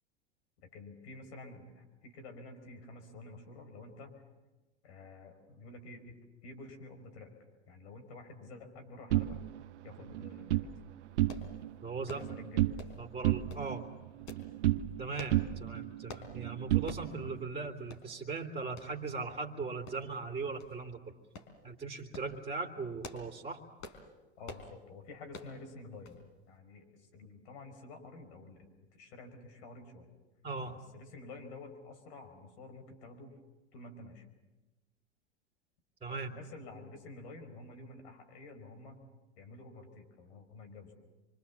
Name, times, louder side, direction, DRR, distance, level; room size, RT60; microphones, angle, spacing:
voice 1, 0.6-4.2 4.8-6.2 6.4-7.3 7.7-9.4 9.8-10.7 12.1-12.7 24.4-26.2 26.5-28.7 28.9-30.1 30.7-33.4 33.7-34.3 36.1-39.1 39.4-40.9, left 2 dB, 70° left, 7 dB, 5.0 m, -50 dB
sound 1, 9.1-10.7 11.1-11.7 12.0-12.9 13.2-15.0 15.3-17.4, right 15 dB, 80° right, 0.8 m, -32 dB
sound 2, 11.3-11.5 12.1-12.3 12.8-13.0 13.5-13.7 14.3-14.5 15.2-15.4 16.1-16.3 16.9-17.1 17.5-17.6 17.9-18.1 18.8-18.9 19.9-20.2 20.6-20.7 21.4-21.5 22.0-22.3 22.8-23.3 23.8-24.0 24.4-24.7 25.3-25.5 26.1-26.2 26.5-26.6, left 3 dB, 50° left, 4.1 m, -47 dB
voice 2, 11.8-12.2 13.0-13.9 15.0-21.1 21.6-23.6 30.4-30.8 36.0-36.3, right 4 dB, 15° right, 2 dB, 2.8 m, -39 dB
26.5 x 24.5 x 7.1 m, 1.1 s
hypercardioid pair, 95°, 35 cm